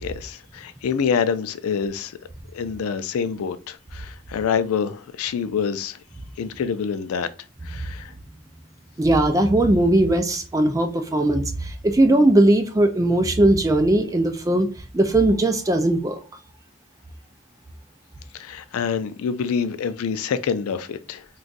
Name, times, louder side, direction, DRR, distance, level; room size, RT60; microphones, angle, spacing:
voice 1, 0.0-2.2 2.5-6.0 6.4-7.3 7.6-8.1 18.3-21.3, left 6 dB, 85° left, 0.4 m, -26 dB
voice 2, 9.0-14.7 14.9-16.2, right 1 dB, 15° right, 0.3 m, -19 dB
2.5 x 2.3 x 3.8 m
head